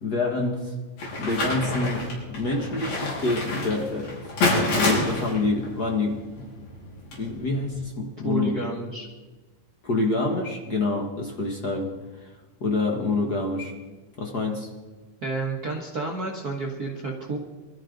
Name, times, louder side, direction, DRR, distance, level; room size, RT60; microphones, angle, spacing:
voice 1, 0.0-0.8 1.2-4.2 4.5-6.5 7.1-8.6 9.8-11.9 12.2-12.3 12.6-13.7 14.2-14.7, left 3 dB, 60° left, 1 dB, 1.0 m, -27 dB
sound 1, 1.0-7.7, left 2 dB, 80° left, 6.1 m, -29 dB
voice 2, 8.2-9.1 15.2-17.4, right 3 dB, 70° right, -1 dB, 0.8 m, -30 dB
23.0 x 13.5 x 3.9 m, 1.2 s
omnidirectional pair, 4.1 m